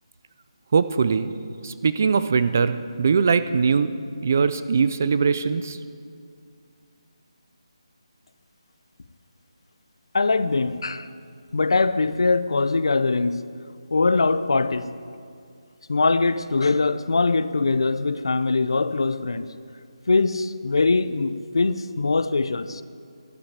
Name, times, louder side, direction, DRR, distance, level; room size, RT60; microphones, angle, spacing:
voice 1, 0.7-1.3 1.6-3.9 4.2-5.8, right 5 dB, 25° right, 0.4 m, -21 dB
voice 2, 10.1-11.1 11.5-13.4 13.9-15.0 15.9-19.5 20.1-22.8, left 3 dB, 55° left, 0.6 m, -22 dB
12.0 x 9.9 x 8.7 m
hypercardioid pair, 175°, 3 cm